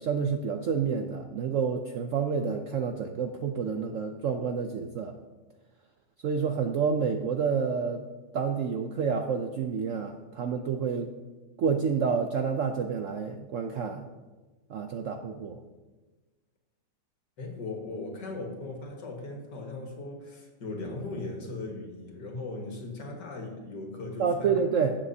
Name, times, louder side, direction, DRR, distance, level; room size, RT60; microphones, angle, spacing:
voice 1, 0.0-5.1 6.2-8.0 8.3-11.1 11.6-14.1 14.7-15.6 24.2-25.0, right 6 dB, 70° right, 5 dB, 0.7 m, -29 dB
voice 2, 17.4-24.7, left 2 dB, 70° left, 1 dB, 2.3 m, -38 dB
16.5 x 7.4 x 2.8 m, 1.2 s
omnidirectional pair, 1.9 m